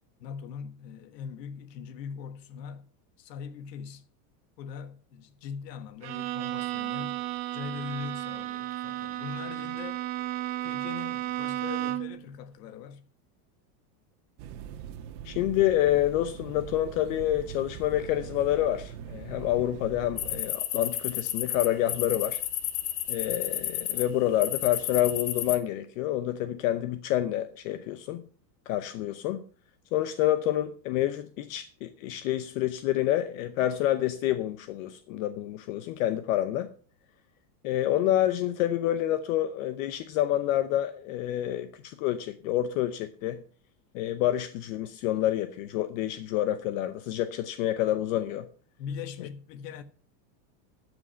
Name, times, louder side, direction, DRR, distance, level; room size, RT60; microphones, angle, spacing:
voice 1, 0.2-2.9 3.2-4.0 4.6-7.2 7.5-10.0 10.6-13.0 48.8-49.8, left 7 dB, 85° left, 1.5 m, -41 dB
Bowed string instrument, 6.0-12.2, right 14 dB, 35° right, 0.9 m, -33 dB
sound 1, 14.4-20.4, right 9 dB, 60° right, 1.4 m, -42 dB
voice 2, 15.2-22.4 23.1-28.2 28.7-29.4 29.9-36.7 37.6-43.4 43.9-48.5, left 13 dB, 55° left, 0.8 m, -28 dB
sound 2, 20.2-24.1 24.4-25.6, left 12 dB, 70° left, 1.5 m, -32 dB
12.5 x 6.2 x 5.7 m
supercardioid pair, 160°, 48 cm